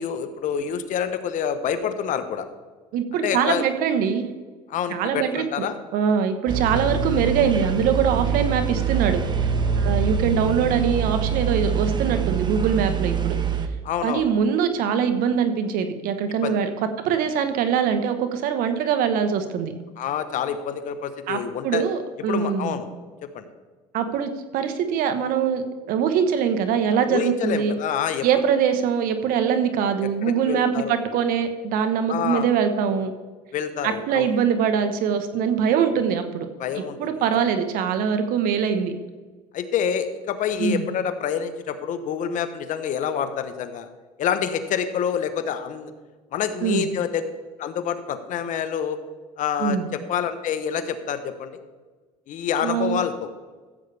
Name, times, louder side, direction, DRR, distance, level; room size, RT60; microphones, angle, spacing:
voice 1, 0.0-2.4 3.2-3.6 4.7-5.8 13.8-14.3 16.4-16.6 20.0-21.8 22.3-22.9 23.2-23.5 27.0-28.3 30.0-30.9 32.1-32.5 33.5-34.3 36.6-37.0 39.5-43.9 44.2-45.9 46.3-47.2 47.6-49.0 49.4-51.6 52.3-53.3, left 8 dB, 55° left, 10 dB, 1.1 m, -27 dB
voice 2, 2.9-4.3 4.9-5.7 5.9-9.2 9.8-13.4 14.0-16.7 17.0-19.7 21.3-22.8 23.9-27.7 28.2-33.1 33.8-36.5 37.0-38.9 40.6-40.8 46.6-46.9 49.6-49.9 52.6-53.0, right 7 dB, 65° right, 9 dB, 1.2 m, -23 dB
sound 1, 6.5-13.7, right 6 dB, 30° right, 1.0 m, -24 dB
15.0 x 8.3 x 3.4 m, 1.4 s
supercardioid pair, 100°, 16 cm